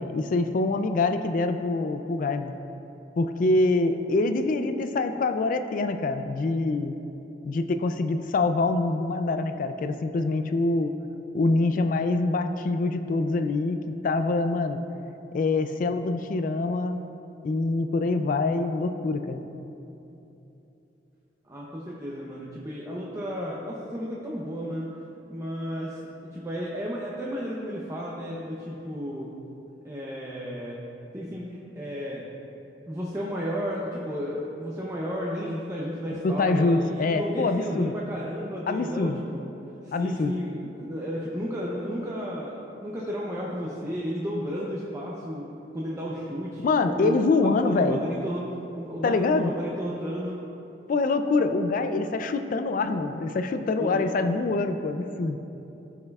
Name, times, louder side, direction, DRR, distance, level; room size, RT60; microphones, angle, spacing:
voice 1, 0.0-2.6 3.2-7.0 7.4-10.9 11.3-14.8 15.3-17.0 17.4-19.4 36.2-37.9 38.7-39.2 39.9-40.3 46.6-48.0 49.0-49.5 50.9-55.4, left 3 dB, 50° left, 8 dB, 0.3 m, -25 dB
voice 2, 21.5-24.9 25.3-29.3 29.8-30.8 31.1-32.3 32.9-39.4 39.8-46.7 46.9-50.4 53.8-54.0 54.4-54.5, equal, 15° right, -5 dB, 0.6 m, -33 dB
14.5 x 5.5 x 2.3 m, 2.9 s
head